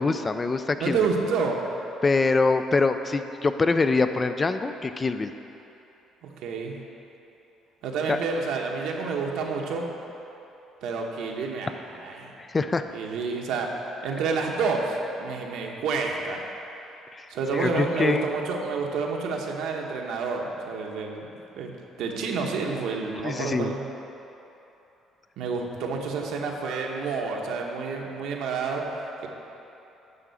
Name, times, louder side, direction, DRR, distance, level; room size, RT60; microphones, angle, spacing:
voice 1, 0.0-1.1 2.0-5.3 8.1-8.2 12.5-12.8 17.1-18.3 23.2-23.7, left 3 dB, 25° left, 9 dB, 0.3 m, -24 dB
voice 2, 0.8-1.6 6.2-6.7 7.8-9.9 10.8-11.7 12.0-12.3 12.9-13.7 14.0-16.4 17.3-21.3 21.6-21.7 22.0-23.8 25.4-28.8, right 4 dB, 80° right, 0 dB, 1.1 m, -29 dB
10.5 x 3.7 x 6.9 m, 3.0 s
cardioid pair, 115°, 0 cm